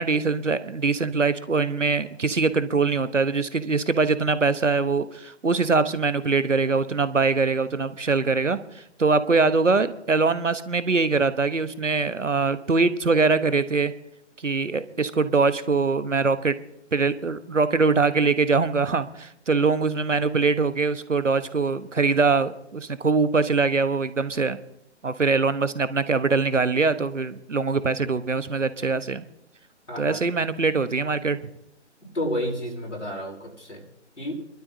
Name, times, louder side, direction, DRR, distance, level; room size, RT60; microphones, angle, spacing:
voice 1, 0.0-13.9 14.4-16.6 16.9-24.6 25.0-29.2 30.0-31.4, right 4 dB, 85° right, 13 dB, 1.0 m, -23 dB
voice 2, 29.9-30.2 32.1-33.8 34.2-34.3, left 1 dB, 85° left, -2 dB, 5.6 m, -30 dB
28.5 x 12.5 x 2.7 m, 0.78 s
figure-of-eight pair, 140°, 36 cm